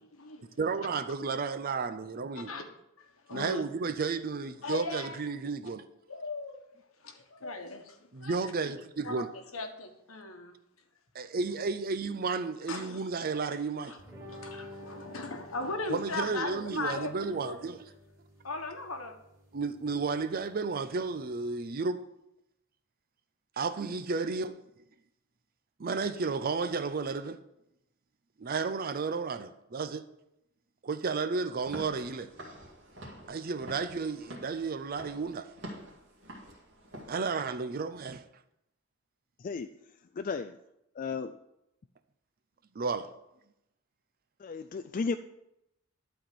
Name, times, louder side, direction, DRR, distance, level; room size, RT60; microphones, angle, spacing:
voice 1, 0.6-2.5 3.3-5.8 8.1-9.3 11.1-13.9 15.9-17.8 19.5-22.0 23.6-24.6 25.8-27.4 28.4-30.0 30.8-32.3 33.3-35.5 37.1-38.2 42.7-43.1, right 4 dB, 45° right, 0.6 m, -32 dB
voice 2, 3.0-3.6 4.6-5.2 6.1-8.4 9.0-9.2 9.5-10.6 12.7-12.9 13.9-14.0 14.3-17.6 18.4-19.1, left 2 dB, 90° left, 1.4 m, -38 dB
sound 1, 14.0-21.7, left 1 dB, 15° right, 2.7 m, -51 dB
Walk footsteps / Siren, 31.6-37.2, right 1 dB, 60° right, 2.2 m, -47 dB
voice 3, 40.2-40.6 41.0-41.4 44.4-45.2, left 4 dB, 40° left, 0.4 m, -34 dB
12.0 x 4.3 x 7.8 m
head